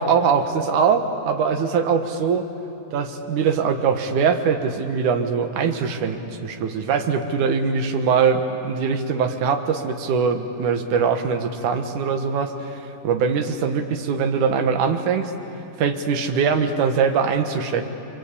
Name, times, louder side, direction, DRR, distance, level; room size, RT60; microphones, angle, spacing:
voice 1, 0.0-2.5 2.9-15.3 15.8-17.9, right 6 dB, 70° right, 6 dB, 2.7 m, -22 dB
29.0 x 24.0 x 8.4 m, 2.9 s
omnidirectional pair, 3.8 m